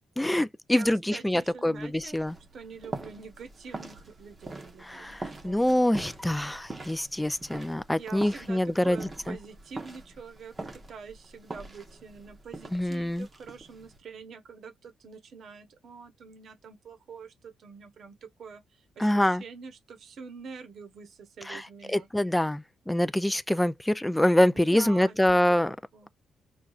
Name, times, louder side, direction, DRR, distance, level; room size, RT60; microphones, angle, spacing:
voice 1, 0.0-2.4 4.9-9.4 12.7-13.3 19.0-19.4 21.5-21.6 21.9-25.8, left 1 dB, 5° left, 0.3 m, -25 dB
voice 2, 0.7-2.2 2.5-6.0 8.0-22.1 24.5-25.4 25.7-26.1, right 5 dB, 55° right, 0.9 m, -46 dB
sound 1, 1.7-14.0, right 2 dB, 20° right, 0.8 m, -43 dB
6.2 x 2.3 x 2.4 m
cardioid pair, 155°, 0 cm